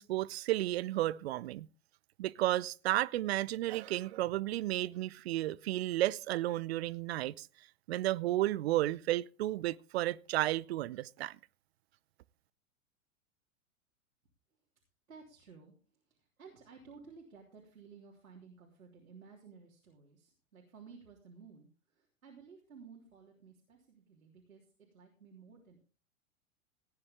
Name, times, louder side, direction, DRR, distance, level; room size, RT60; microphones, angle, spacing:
voice 1, 0.0-1.7 2.2-7.5 7.9-11.4, right 15 dB, 50° right, 0.7 m, -33 dB
voice 2, 15.1-24.7 24.9-25.8, right 5 dB, 75° right, 3.4 m, -55 dB
18.0 x 9.6 x 3.6 m
figure-of-eight pair, 105°, 41 cm